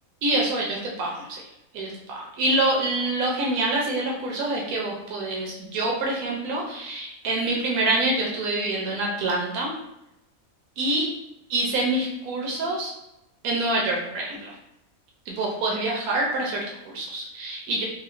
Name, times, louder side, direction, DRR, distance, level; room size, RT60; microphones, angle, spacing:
voice 1, 0.2-1.4 1.7-9.7 10.8-11.1 11.5-12.9 13.4-14.6 15.3-17.8, right 2 dB, 90° right, -2 dB, 1.1 m, -26 dB
3.5 x 2.2 x 2.4 m, 0.89 s
omnidirectional pair, 1.5 m